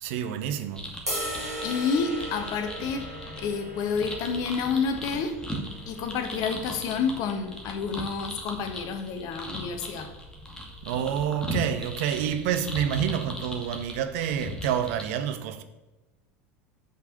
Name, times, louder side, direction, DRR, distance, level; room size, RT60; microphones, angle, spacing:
voice 1, 0.0-0.9 10.9-15.6, right 9 dB, 60° right, 0.8 m, -28 dB
sound 1, 0.7-15.0, equal, 10° left, 2.1 m, -38 dB
sound 2, 1.1-7.3, right 1 dB, 90° right, 3.7 m, -38 dB
voice 2, 1.6-5.4 5.9-10.1, left 5 dB, 50° left, 1.3 m, -29 dB
7.8 x 5.8 x 6.7 m
figure-of-eight pair, 80°, 8 cm